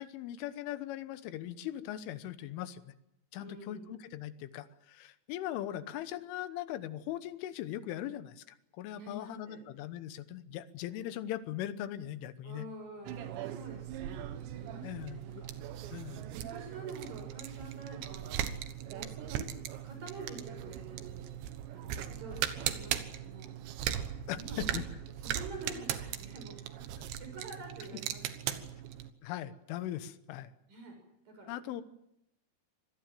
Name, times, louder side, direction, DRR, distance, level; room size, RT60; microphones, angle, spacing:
voice 1, 0.0-2.9 3.3-8.5 8.8-12.7 14.8-15.2 15.9-16.3 24.3-24.8 29.2-30.5 31.5-31.8, left 12 dB, 90° left, 12 dB, 3.6 m, -40 dB
voice 2, 3.3-3.9 8.9-9.6 12.4-15.8 16.3-18.5 18.9-19.6 19.8-21.3 21.7-23.6 24.3-24.8 25.2-28.8 30.7-31.0 31.2-31.6, right 2 dB, 45° right, 4 dB, 8.3 m, -48 dB
sound 1, 13.1-29.1, right 11 dB, 75° right, 3.4 m, -39 dB
26.0 x 19.5 x 7.6 m, 0.82 s
omnidirectional pair, 5.5 m